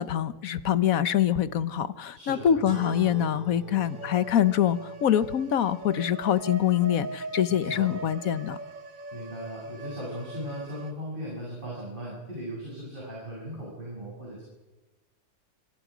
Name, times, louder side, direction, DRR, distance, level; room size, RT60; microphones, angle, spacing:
voice 1, 0.0-8.6, left 10 dB, 65° left, 14 dB, 1.3 m, -25 dB
voice 2, 2.1-2.5 7.5-7.9 9.1-14.4, equal, 30° right, -5 dB, 8.0 m, -38 dB
sound 1, 2.6-7.5, right 2 dB, 25° left, 8.4 m, -44 dB
sound 2, 3.8-10.9, right 2 dB, 55° right, 1.9 m, -40 dB
26.5 x 25.5 x 5.1 m, 1.1 s
omnidirectional pair, 1.7 m